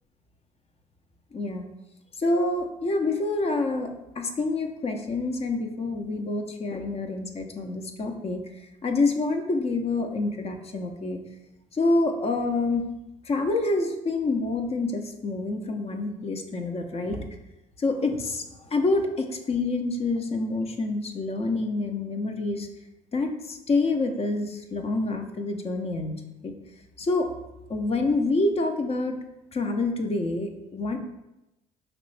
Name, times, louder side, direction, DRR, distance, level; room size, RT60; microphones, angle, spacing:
voice 1, 1.3-1.6 2.2-8.4 8.8-11.2 11.7-12.9 13.3-17.2 17.8-22.7 23.1-26.1 26.4-26.5 27.0-27.3 27.7-29.2 29.5-31.0, left 2 dB, 35° left, 5 dB, 0.7 m, -27 dB
5.1 x 3.0 x 3.2 m, 0.93 s
hypercardioid pair, 65°, 17 cm